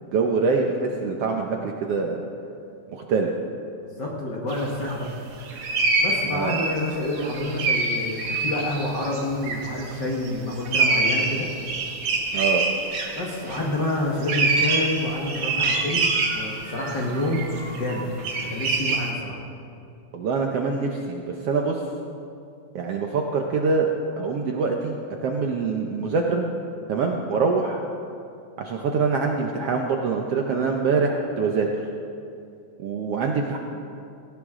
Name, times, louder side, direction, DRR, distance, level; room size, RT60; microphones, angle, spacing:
voice 1, 0.0-2.2 2.9-3.3 6.3-6.6 12.3-12.7 20.1-21.8 22.7-23.9 24.2-26.5 26.9-27.8 28.6-31.9 32.8-33.6, right 4 dB, 65° right, 2 dB, 1.6 m, -24 dB
voice 2, 3.8-5.1 6.0-11.5 13.1-18.0 18.4-19.4, left 1 dB, 45° left, -2 dB, 1.7 m, -28 dB
sound 1, 4.5-5.1 5.4-13.7 14.2-19.1, right 3 dB, 50° right, 2.0 m, -26 dB
17.5 x 17.5 x 3.7 m, 2.5 s
omnidirectional pair, 3.6 m